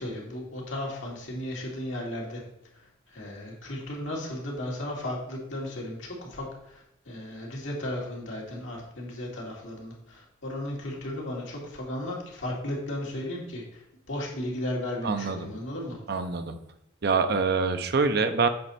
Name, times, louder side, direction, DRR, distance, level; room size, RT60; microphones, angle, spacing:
voice 1, 0.0-2.4 2.7-13.8 14.1-16.0, left 1 dB, 70° left, -3 dB, 2.5 m, -35 dB
voice 2, 15.0-15.5 16.1-16.6 17.0-18.5, right 4 dB, 55° right, 9 dB, 0.6 m, -25 dB
7.7 x 5.3 x 4.1 m, 0.82 s
head